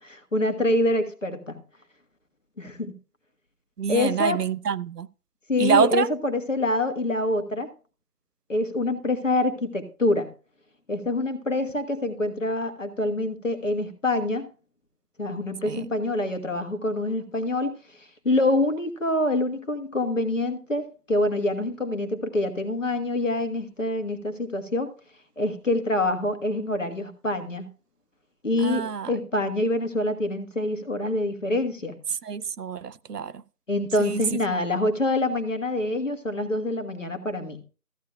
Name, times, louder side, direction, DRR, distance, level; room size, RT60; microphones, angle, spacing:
voice 1, 0.0-1.6 2.6-2.9 3.9-4.4 5.5-7.7 8.5-10.3 10.9-14.5 15.2-17.8 18.2-24.9 25.4-27.7 28.4-31.9 33.7-37.6, left 2 dB, 55° left, 1.4 m, -26 dB
voice 2, 3.8-5.1 5.6-6.1 15.6-15.9 28.6-29.1 32.2-33.3 34.1-34.2, right 6 dB, 85° right, 0.6 m, -26 dB
14.0 x 9.4 x 2.3 m
figure-of-eight pair, 170°, 46 cm